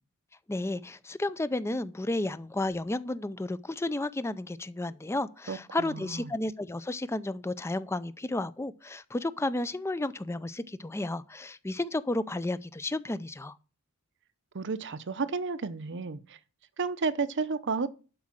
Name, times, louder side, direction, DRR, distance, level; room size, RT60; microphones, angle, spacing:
voice 1, 0.5-13.6, left 2 dB, 10° left, 0.4 m, -32 dB
voice 2, 5.5-6.3 14.5-16.4 16.8-17.9, right 4 dB, 55° right, 0.7 m, -32 dB
11.5 x 4.9 x 7.4 m
head